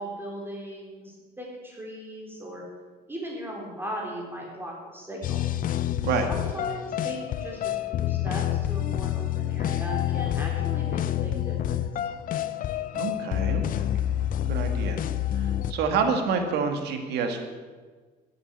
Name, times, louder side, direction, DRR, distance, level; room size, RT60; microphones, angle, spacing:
voice 1, 0.0-2.6 3.1-5.4 6.3-11.8, right 1 dB, 15° right, -2 dB, 4.0 m, -38 dB
sound 1, 5.2-15.7, left 12 dB, 55° left, 0.6 m, -28 dB
voice 2, 12.9-14.0 14.5-15.0 15.3-17.5, right 5 dB, 80° right, 5 dB, 2.2 m, -28 dB
13.0 x 8.2 x 8.2 m, 1.4 s
cardioid pair, 110°, 17 cm